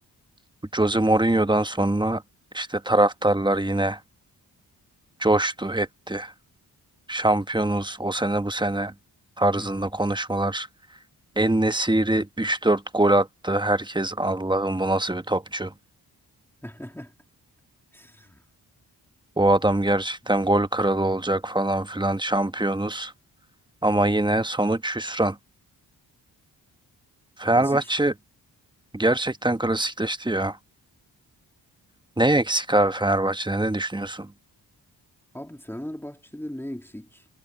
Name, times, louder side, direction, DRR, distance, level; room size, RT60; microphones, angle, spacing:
voice 1, 0.7-2.2 2.5-4.0 5.2-6.3 7.1-8.9 9.4-10.7 11.4-15.7 19.4-23.1 23.8-25.4 27.4-28.1 28.9-30.6 32.2-34.3, right 1 dB, 10° right, 1.2 m, -23 dB
voice 2, 9.5-9.9 16.6-17.2 17.9-18.4 27.5-27.9 35.3-37.3, left 1 dB, 5° left, 2.5 m, -38 dB
cardioid pair, 45°, 43 cm